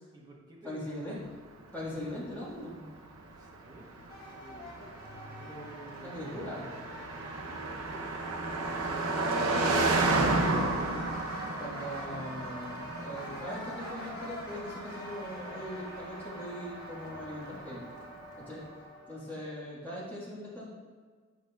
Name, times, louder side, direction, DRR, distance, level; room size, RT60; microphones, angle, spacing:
voice 1, 0.1-1.0 3.4-4.0 4.4-4.9 5.4-6.3 7.4-10.2, right 1 dB, 20° right, -3 dB, 0.9 m, -51 dB
voice 2, 0.6-1.3 1.7-2.8 6.0-6.7 10.4-10.7 11.6-17.9 18.4-18.7 19.1-20.7, equal, 10° left, -8 dB, 1.4 m, -40 dB
Car passing by, 1.7-18.2, right 2 dB, 80° right, 0.6 m, -33 dB
sound 1, 4.1-19.5, left 1 dB, 45° left, 1.1 m, -46 dB
8.5 x 5.1 x 2.3 m, 1.5 s
head